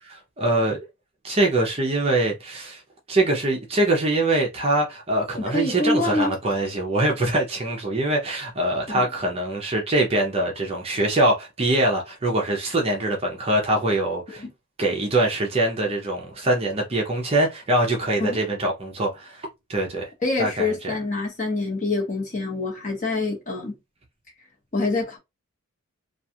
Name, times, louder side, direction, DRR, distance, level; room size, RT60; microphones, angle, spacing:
voice 1, 0.1-0.8 1.2-2.8 3.1-14.4 14.8-20.1 20.4-20.9, right 1 dB, 25° right, 0.5 m, -23 dB
voice 2, 5.4-6.3 8.9-9.1 14.4-14.5 18.2-18.4 20.2-23.7 24.7-25.2, left 3 dB, 35° left, 1.0 m, -26 dB
2.4 x 2.3 x 2.7 m
head